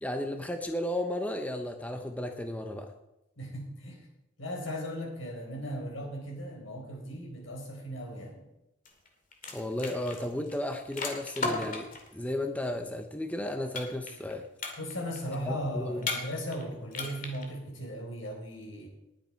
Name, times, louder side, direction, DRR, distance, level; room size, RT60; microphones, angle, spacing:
voice 1, 0.0-2.9 9.5-14.4 15.4-16.1, left 1 dB, 10° left, 5 dB, 0.9 m, -34 dB
voice 2, 3.4-4.0 4.4-8.4 14.8-18.9, equal, 80° left, 0 dB, 4.4 m, -37 dB
sound 1, 8.9-9.1 9.3-12.1 13.8-14.3 14.6-15.2 16.0-16.6 16.9-17.4, left 3 dB, 45° left, 2.3 m, -35 dB
19.5 x 8.1 x 4.6 m, 0.88 s
head